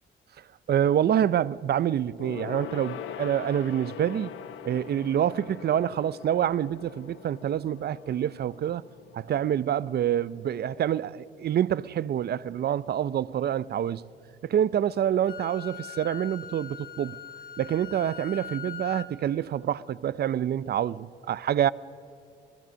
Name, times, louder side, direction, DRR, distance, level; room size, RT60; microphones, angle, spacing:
voice 1, 0.7-4.3 4.6-8.8 9.1-14.0 14.4-17.2 17.6-21.7, right 10 dB, 55° right, 0.6 m, -27 dB
Gong, 2.2-12.0 12.3-12.5 12.8-12.9, left 9 dB, 90° left, 1.0 m, -43 dB
Wind instrument woodwind instrument, 15.3-19.1, left 8 dB, 50° left, 3.4 m, -41 dB
26.0 x 19.5 x 6.3 m
cardioid pair, 90°, 20 cm